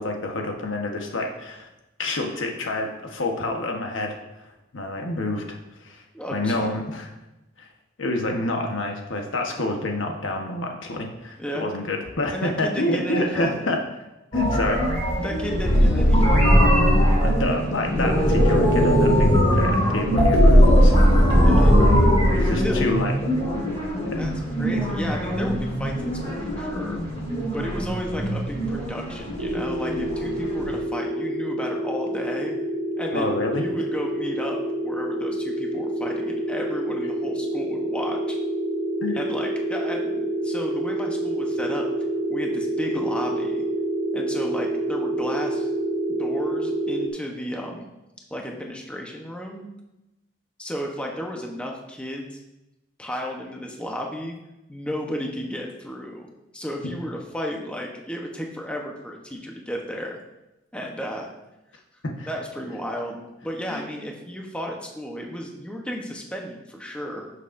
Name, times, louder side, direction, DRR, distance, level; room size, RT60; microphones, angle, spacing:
voice 1, 0.0-1.7 2.0-6.0 6.3-7.1 7.6-7.7 8.0-13.8 14.3-14.8 17.2-20.9 21.7-22.0 22.3-23.1 24.0-24.3 33.1-33.6 39.0-39.2 62.0-62.3 63.7-63.8, left 2 dB, 75° left, 2 dB, 1.2 m, -28 dB
voice 2, 6.1-6.7 11.4-11.7 12.3-13.7 15.2-16.6 21.4-21.8 22.6-22.9 24.2-24.3 24.6-27.0 27.5-32.6 33.0-38.4 39.1-41.9 42.3-43.6 44.1-45.7 46.1-47.9 48.3-49.7 50.6-52.4 53.0-54.3 54.7-56.3 56.5-60.2 60.7-61.3 61.7-61.8 62.3-67.3, equal, 5° left, 0 dB, 0.9 m, -33 dB
sound 1, 14.3-30.8, equal, 30° left, 2.5 m, -20 dB
sound 2, 29.4-47.1, right 1 dB, 75° right, 1.1 m, -27 dB
11.0 x 6.4 x 2.6 m, 0.95 s
head